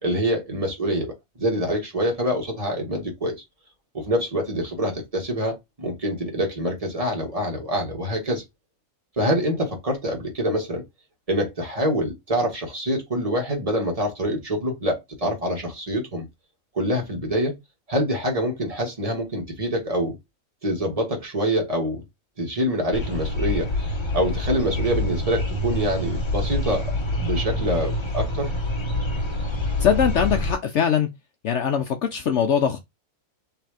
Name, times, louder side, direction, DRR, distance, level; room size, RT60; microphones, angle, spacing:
voice 1, 0.0-3.4 3.9-8.4 9.2-10.8 11.3-16.2 16.7-17.6 17.9-20.2 20.6-22.0 22.4-26.9 27.1-28.5, equal, 25° right, 1.7 m, -25 dB
sound 1, 22.9-30.5, left 1 dB, 25° left, 0.8 m, -26 dB
voice 2, 29.8-31.1 31.4-32.8, left 8 dB, 65° left, 0.9 m, -21 dB
3.4 x 3.3 x 4.8 m
omnidirectional pair, 1.4 m